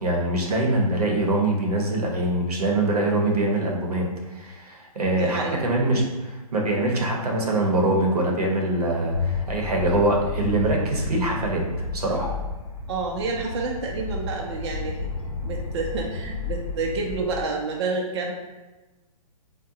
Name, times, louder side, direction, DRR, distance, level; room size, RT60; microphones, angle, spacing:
voice 1, 0.0-12.3, right 2 dB, 90° right, 0 dB, 0.9 m, -24 dB
voice 2, 5.1-5.6 6.8-7.0 12.9-15.0 15.4-18.3, right 3 dB, 45° right, -1 dB, 0.5 m, -29 dB
sound 1, 9.1-17.4, left 3 dB, 75° left, 0.8 m, -31 dB
3.7 x 2.2 x 2.7 m, 1.1 s
hypercardioid pair, 140°, 19 cm